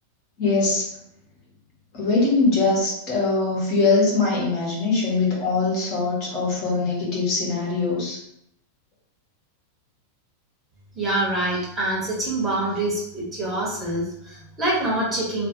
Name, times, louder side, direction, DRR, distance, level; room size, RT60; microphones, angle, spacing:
voice 1, 0.4-0.9 1.9-8.2, left 3 dB, 40° left, -5 dB, 1.2 m, -22 dB
voice 2, 11.0-15.5, right 1 dB, 20° right, -6 dB, 1.1 m, -25 dB
2.6 x 2.5 x 2.8 m, 0.77 s
figure-of-eight pair, 90°, 0 cm